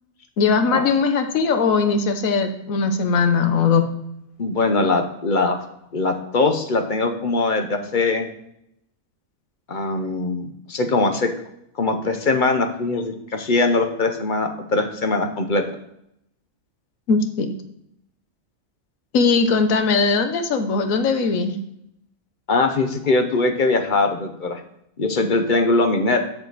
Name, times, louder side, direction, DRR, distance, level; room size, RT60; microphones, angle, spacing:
voice 1, 0.4-3.8 17.1-17.5 19.1-21.6, left 5 dB, 75° left, 7 dB, 1.3 m, -19 dB
voice 2, 4.4-5.6 5.9-8.3 9.7-11.3 11.8-15.6 22.5-24.6 25.0-26.2, left 3 dB, 40° left, 6 dB, 0.9 m, -21 dB
7.1 x 6.9 x 4.0 m, 0.77 s
omnidirectional pair, 1.4 m